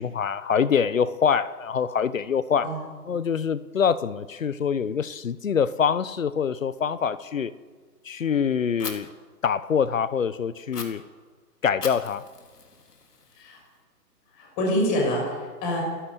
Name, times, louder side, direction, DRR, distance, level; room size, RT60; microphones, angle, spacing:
voice 1, 0.0-2.7 3.1-7.5 8.0-9.1 9.4-11.0 11.6-12.2, left 7 dB, 55° left, 16 dB, 1.0 m, -25 dB
Fire, 8.8-8.9 10.7-10.8 11.8-13.8, left 5 dB, 75° left, 4.2 m, -39 dB
voice 2, 14.3-15.8, equal, 15° left, -1 dB, 5.7 m, -26 dB
30.0 x 12.5 x 8.3 m, 1.5 s
hypercardioid pair, 160°, 48 cm